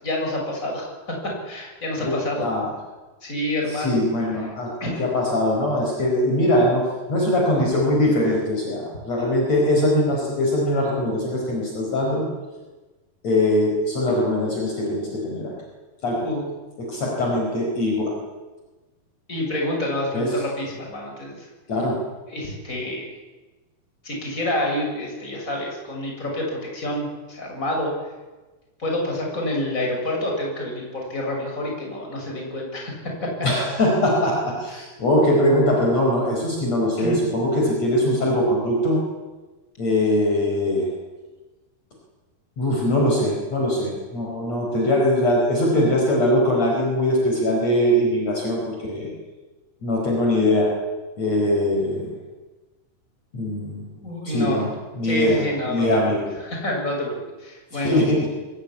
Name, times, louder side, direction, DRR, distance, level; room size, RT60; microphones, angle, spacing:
voice 1, 0.0-2.5 3.2-4.1 4.8-5.1 16.2-16.5 19.3-21.5 22.3-23.1 24.0-27.9 28.8-32.9 33.2-33.3 37.0-37.3 54.0-54.7 55.0-56.0 56.4-58.0, left 1 dB, 20° left, 0 dB, 7.1 m, -28 dB
voice 2, 2.0-2.7 3.7-12.3 13.2-15.5 16.0-16.3 16.8-18.1 20.1-20.3 21.7-22.0 33.4-39.0 39.8-40.9 42.6-49.1 49.8-50.7 51.2-52.1 53.3-53.9 54.3-54.7 55.0-56.3 57.7-58.3, left 1 dB, 45° left, -1 dB, 5.9 m, -21 dB
23.5 x 18.5 x 9.9 m, 1.2 s
omnidirectional pair, 4.1 m